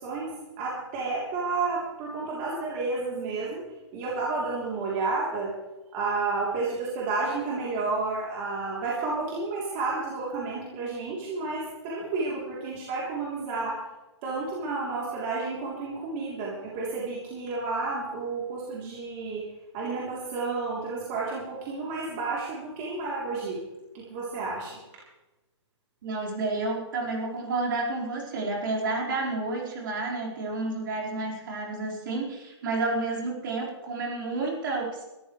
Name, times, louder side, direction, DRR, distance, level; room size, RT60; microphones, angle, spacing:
voice 1, 0.0-3.6 3.9-5.5 5.9-13.8 14.2-19.4 19.7-23.6 23.9-24.8, right 3 dB, 25° right, -5 dB, 3.3 m, -31 dB
voice 2, 26.0-35.0, right 3 dB, 45° right, -2 dB, 4.8 m, -30 dB
23.0 x 13.5 x 3.3 m, 1.1 s
hypercardioid pair, 165°, 15 cm